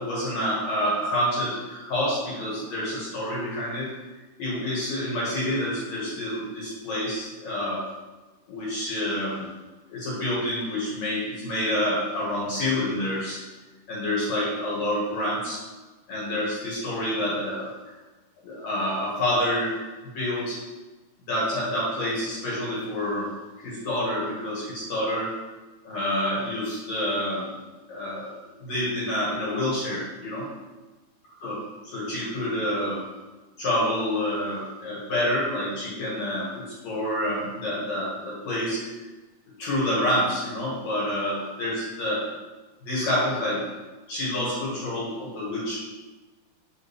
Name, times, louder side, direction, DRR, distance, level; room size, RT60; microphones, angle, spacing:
voice 1, 0.0-3.9 4.4-7.9 8.5-9.5 9.9-13.4 13.9-15.6 16.1-17.7 18.4-19.8 20.0-20.6 21.3-23.3 23.6-25.3 25.8-27.5 27.9-28.3 28.6-30.5 31.4-31.6 31.9-33.0 33.6-38.8 39.6-42.2 42.8-43.6 44.1-45.8, left 1 dB, 60° left, -7 dB, 2.5 m, -28 dB
6.3 x 5.0 x 3.1 m, 1.2 s
omnidirectional pair, 4.2 m